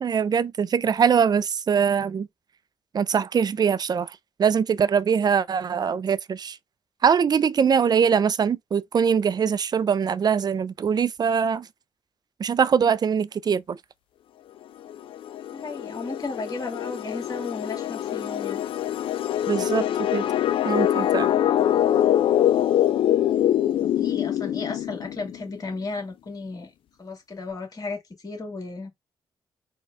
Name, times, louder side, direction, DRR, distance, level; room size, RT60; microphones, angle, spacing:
voice 1, 0.0-2.3 2.9-6.6 7.0-11.7 12.4-13.8 19.5-20.3 20.6-21.3, right 7 dB, 45° right, 0.4 m, -22 dB
sound 1, 14.9-25.4, left 11 dB, 65° left, 0.3 m, -24 dB
voice 2, 15.5-18.6 23.6-26.7 27.0-28.9, left 3 dB, 40° left, 2.0 m, -34 dB
4.1 x 2.3 x 3.4 m
supercardioid pair, 55°, 10 cm